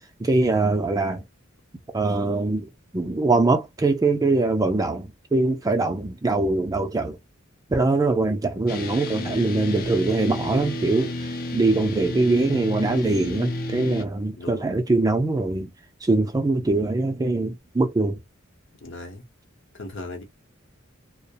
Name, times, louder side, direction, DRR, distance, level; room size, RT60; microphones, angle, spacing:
voice 1, 0.2-1.3 1.9-7.2 7.7-15.7 16.0-18.2, right 2 dB, 20° right, 0.4 m, -23 dB
sound 1, 8.7-14.0, left 1 dB, 45° left, 0.5 m, -31 dB
voice 2, 14.4-14.7 18.8-19.2 19.7-20.2, left 2 dB, 60° left, 0.9 m, -37 dB
2.3 x 2.0 x 2.7 m
head